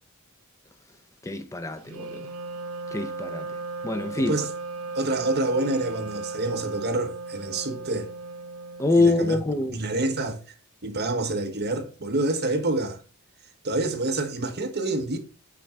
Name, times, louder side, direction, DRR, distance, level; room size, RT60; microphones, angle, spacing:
voice 1, 1.2-2.3 2.9-3.5 3.8-4.3 8.8-9.8, left 2 dB, 15° left, 0.6 m, -24 dB
Wind instrument woodwind instrument, 1.8-9.7, right 3 dB, 70° right, 0.9 m, -36 dB
voice 2, 4.2-4.5 4.9-8.1 8.9-9.4 9.7-10.4 10.8-13.0 13.6-15.2, right 2 dB, 50° right, 1.2 m, -27 dB
8.5 x 3.7 x 4.4 m
head